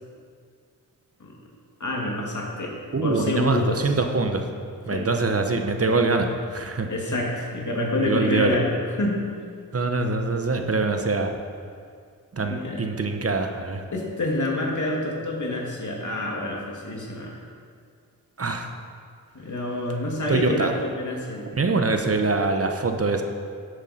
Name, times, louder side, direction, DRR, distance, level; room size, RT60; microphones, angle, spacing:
voice 1, 1.8-2.8 3.0-3.8 4.9-5.1 6.9-9.2 12.4-12.9 13.9-17.4 19.3-21.5, left 1 dB, 55° left, -1 dB, 2.2 m, -27 dB
voice 2, 2.9-4.4 4.9-6.9 8.0-8.6 9.7-11.3 12.3-13.8 18.4-18.7 20.3-20.7 21.6-23.2, right 3 dB, 40° right, 5 dB, 1.0 m, -24 dB
11.5 x 8.1 x 4.3 m, 2.1 s
cardioid pair, 55°, 35 cm